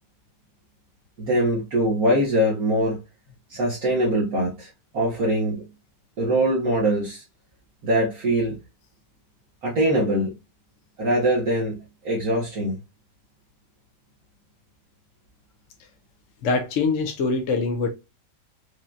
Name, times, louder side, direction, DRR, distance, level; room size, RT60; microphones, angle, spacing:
voice 1, 1.2-3.0 3.5-5.6 6.2-7.2 7.8-8.6 9.6-10.3 11.0-12.8, right 1 dB, 55° right, 1.6 m, -23 dB
voice 2, 16.4-17.9, left 4 dB, 60° left, 0.8 m, -23 dB
4.8 x 2.8 x 2.4 m
omnidirectional pair, 1.9 m